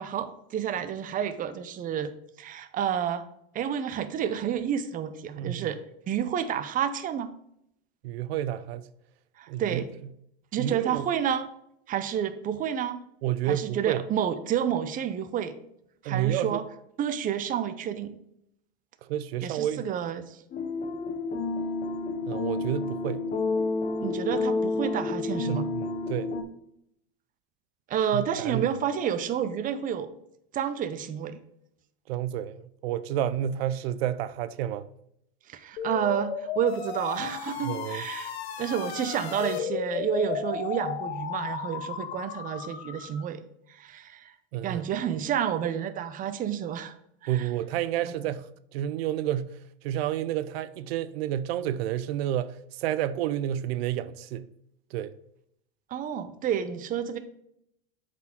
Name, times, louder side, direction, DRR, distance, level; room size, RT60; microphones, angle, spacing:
voice 1, 0.0-2.1 2.4-3.3 3.5-5.8 6.1-7.3 9.4-9.9 10.5-11.5 11.9-13.0 13.4-15.6 16.0-16.6 17.0-18.1 19.4-20.4 24.0-25.7 27.9-30.1 30.5-31.4 35.5-38.3 38.6-43.4 43.7-44.3 44.6-46.9 47.2-47.5 55.9-57.2, right 9 dB, 25° right, 0.6 m, -30 dB
voice 2, 8.0-8.9 9.5-9.8 10.6-11.1 13.2-14.0 16.0-16.6 19.0-19.9 22.2-23.2 25.4-26.3 28.1-28.7 32.1-34.9 37.6-38.1 44.5-44.8 47.3-54.5 54.9-55.1, right 11 dB, 80° right, 0.5 m, -30 dB
sound 1, 20.5-26.4, left 3 dB, 25° left, 0.8 m, -30 dB
sound 2, 35.8-43.2, left 8 dB, 90° left, 1.0 m, -34 dB
7.9 x 5.0 x 3.6 m
supercardioid pair, 125°, 30 cm